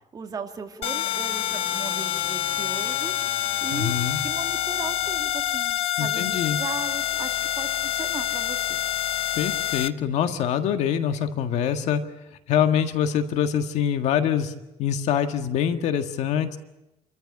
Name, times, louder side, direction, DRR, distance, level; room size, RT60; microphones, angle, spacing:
voice 1, 0.0-3.9 4.2-8.8, right 5 dB, 35° right, 5 dB, 2.1 m, -37 dB
sound 1, 0.8-9.9, left 11 dB, 55° left, 0.7 m, -27 dB
voice 2, 3.7-4.2 6.0-6.6 9.3-12.0 12.5-14.5 14.8-16.6, left 9 dB, 75° left, 7 dB, 1.7 m, -24 dB
28.0 x 14.0 x 8.8 m, 0.94 s
cardioid pair, 125°, 12 cm